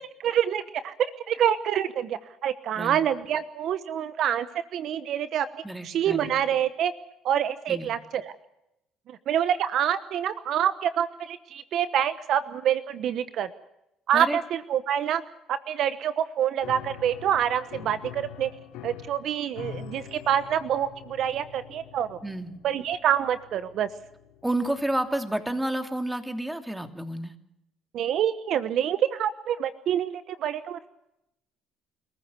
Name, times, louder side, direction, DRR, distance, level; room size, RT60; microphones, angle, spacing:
voice 1, 0.2-0.9 1.3-4.5 4.7-5.5 5.8-6.9 7.2-8.3 9.1-13.5 14.1-15.2 15.5-18.5 18.8-22.2 22.6-23.9 27.9-30.8, right 9 dB, 65° right, 13 dB, 1.1 m, -26 dB
voice 2, 5.6-6.3 7.7-7.9 14.1-14.4 22.2-22.6 24.4-27.4, right 1 dB, 5° right, 6 dB, 2.8 m, -30 dB
Piano, 16.6-25.1, left 9 dB, 85° left, 2.9 m, -45 dB
28.5 x 15.0 x 8.4 m, 0.83 s
supercardioid pair, 85°, 0 cm